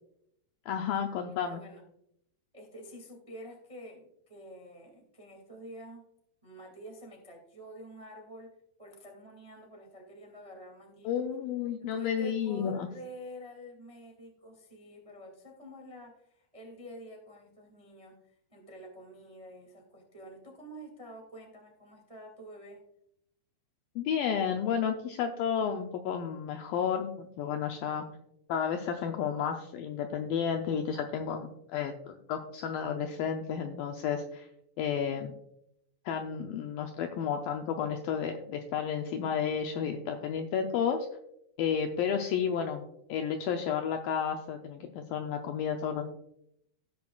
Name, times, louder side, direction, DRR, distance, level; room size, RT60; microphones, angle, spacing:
voice 1, 0.7-1.6 11.1-12.9 24.0-28.0 28.5-34.5 34.8-35.3 36.1-41.1 41.6-46.1, left 7 dB, 90° left, 4 dB, 2.0 m, -32 dB
voice 2, 1.3-1.8 2.5-6.0 6.4-8.5 8.8-11.2 11.8-22.8, equal, 30° right, 0 dB, 0.6 m, -48 dB
17.5 x 6.1 x 2.3 m, 0.76 s
omnidirectional pair, 4.8 m